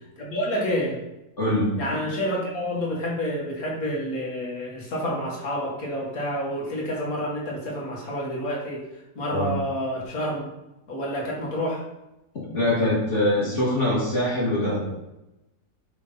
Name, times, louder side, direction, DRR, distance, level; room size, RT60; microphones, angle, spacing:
voice 1, 0.2-1.0 1.8-8.8 9.1-10.4 10.9-11.8, equal, 65° left, -3 dB, 2.3 m, -28 dB
voice 2, 1.4-1.7 9.3-9.5 12.3-14.9, left 1 dB, 45° left, -6 dB, 2.5 m, -23 dB
8.2 x 5.5 x 4.1 m, 0.93 s
omnidirectional pair, 1.7 m